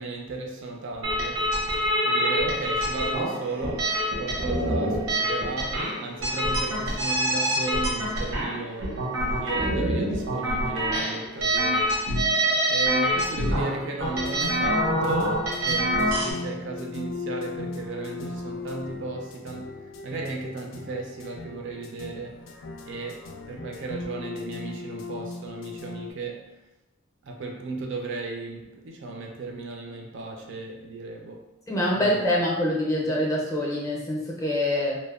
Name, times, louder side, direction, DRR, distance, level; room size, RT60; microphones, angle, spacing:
voice 1, 0.0-1.5 2.0-9.1 9.4-22.5 22.8-26.6 27.2-31.5 31.9-32.3, right 3 dB, 65° right, 0.4 m, -35 dB
sound 1, 1.0-16.3, right 1 dB, 85° right, 0.7 m, -26 dB
sound 2, 14.0-26.1, left 3 dB, 85° left, 0.3 m, -38 dB
voice 2, 31.7-35.0, left 1 dB, 15° left, 0.5 m, -25 dB
2.8 x 2.0 x 2.3 m
head